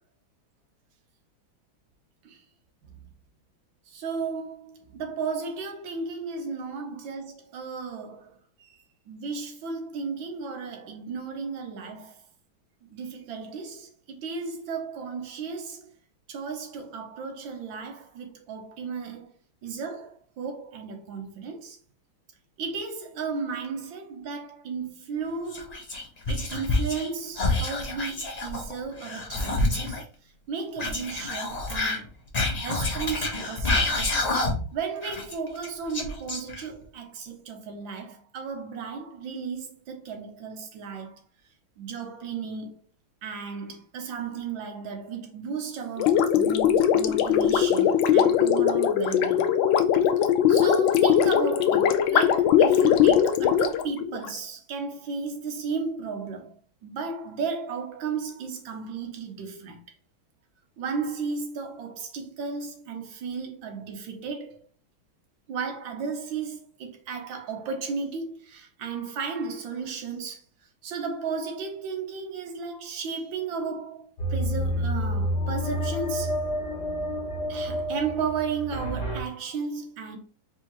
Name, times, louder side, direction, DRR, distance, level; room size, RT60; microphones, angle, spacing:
voice 1, 3.9-8.7 9.1-12.2 12.9-15.9 16.3-19.4 19.6-21.8 22.6-25.8 26.3-30.0 30.5-32.1 32.6-34.4 34.7-41.2 41.8-42.7 43.2-49.5 50.5-56.5 56.8-59.8 60.8-64.7 65.5-70.4 70.8-76.4 77.5-80.2, right 5 dB, 75° right, 1.5 m, -34 dB
Whispering, 25.5-27.1 27.3-30.0 30.8-34.7 35.0-36.8, left 2 dB, 35° left, 0.6 m, -28 dB
Gurgling, 46.0-54.4, left 9 dB, 75° left, 1.2 m, -20 dB
sound 1, 74.2-79.2, equal, 50° left, 1.4 m, -29 dB
4.5 x 3.5 x 2.9 m
omnidirectional pair, 2.2 m